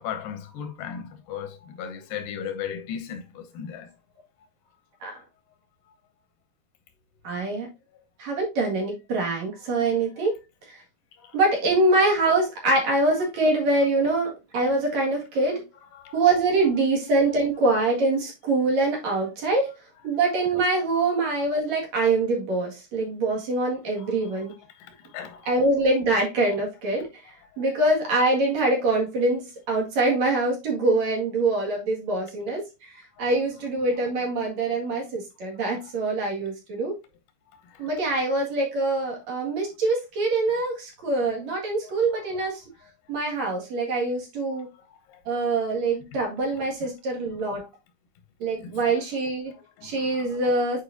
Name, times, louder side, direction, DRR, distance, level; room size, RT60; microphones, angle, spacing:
voice 1, 0.0-3.9 11.2-11.4 15.9-16.2 24.0-24.4 24.8-25.5 27.5-27.8 33.2-33.3 35.7-35.8 37.7-37.9 41.8-42.4 42.8-42.9 44.6-44.7 45.1-45.4 46.8-46.9 47.5-47.6 48.6-49.0 49.5-50.4, left 8 dB, 85° left, 2.7 m, -38 dB
voice 2, 7.2-7.7 8.2-10.3 10.7-10.8 11.3-15.6 16.1-19.8 20.0-24.5 25.5-32.6 32.9-37.0 37.8-42.6 43.1-44.7 45.3-47.7 48.4-49.5 49.8-50.8, right 2 dB, 55° right, 3.0 m, -24 dB
8.6 x 4.7 x 2.6 m
omnidirectional pair, 3.9 m